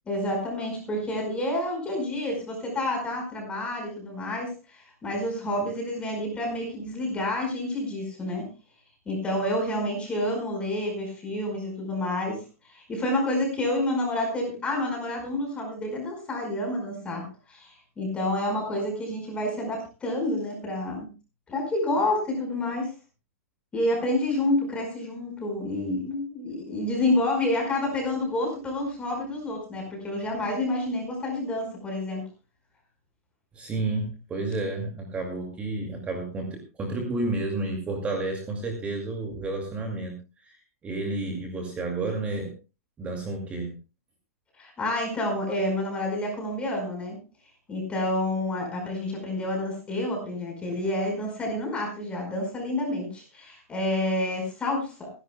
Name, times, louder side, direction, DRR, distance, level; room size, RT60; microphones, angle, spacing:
voice 1, 0.1-8.5 9.0-21.1 21.5-22.9 23.7-32.2 44.6-47.2 47.7-55.1, left 1 dB, 15° left, 1 dB, 4.9 m, -29 dB
voice 2, 33.5-40.1 40.4-42.5 43.0-43.7, right 2 dB, 15° right, 2 dB, 2.3 m, -31 dB
26.0 x 11.0 x 2.2 m, 0.30 s
hypercardioid pair, 145°, 8 cm